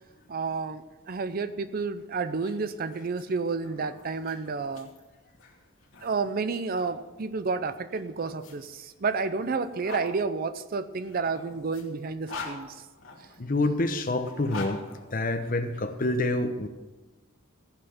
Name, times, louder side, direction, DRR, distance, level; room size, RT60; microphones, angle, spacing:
voice 1, 0.3-4.9 6.0-12.8, right 4 dB, 45° right, 12 dB, 0.5 m, -30 dB
sound 1, 2.3-6.9 7.9-10.1 11.0-13.4 14.2-15.8, left 3 dB, 75° left, 2.5 m, -44 dB
voice 2, 13.4-14.8 15.1-16.7, left 2 dB, 45° left, 8 dB, 0.9 m, -27 dB
14.5 x 5.8 x 7.0 m, 1.2 s
head